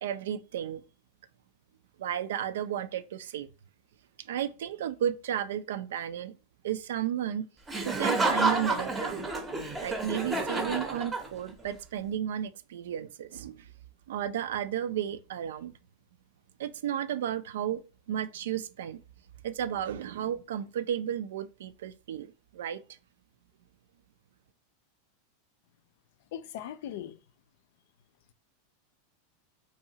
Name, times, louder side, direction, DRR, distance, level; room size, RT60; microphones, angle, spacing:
voice 1, 0.0-0.8 2.0-3.5 4.2-6.4 6.6-7.5 7.8-9.3 9.8-13.7 14.1-15.7 16.6-17.8 18.1-19.0 19.4-22.8, right 10 dB, 80° right, 0.3 m, -33 dB
Laughter, 7.7-11.6, right 2 dB, 15° right, 0.6 m, -30 dB
voice 2, 26.3-27.2, left 10 dB, 70° left, 0.4 m, -39 dB
2.8 x 2.3 x 2.8 m
hypercardioid pair, 115°, 0 cm